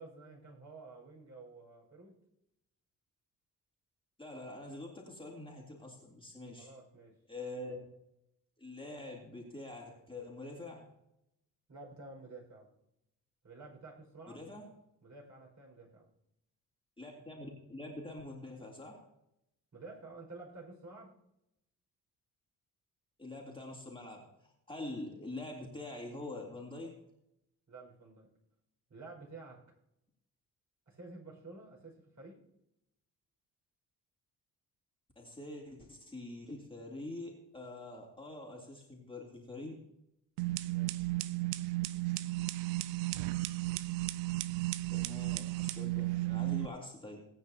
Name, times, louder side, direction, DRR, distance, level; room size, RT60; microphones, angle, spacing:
voice 1, 0.0-2.2 6.6-7.1 11.7-12.7 13.4-14.4 15.0-16.1 19.7-21.2 27.7-28.3 28.9-29.6 30.9-32.5 40.7-41.0, right 3 dB, 35° right, -2 dB, 5.6 m, -51 dB
voice 2, 4.2-6.7 7.3-7.8 8.6-10.9 14.3-14.7 17.0-19.0 23.2-26.9 35.1-39.8 44.9-47.3, left 2 dB, 10° left, -2 dB, 3.2 m, -45 dB
sound 1, 40.4-46.7, right 19 dB, 65° right, 0.6 m, -34 dB
19.0 x 9.2 x 2.9 m, 0.82 s
figure-of-eight pair, 40°, 49 cm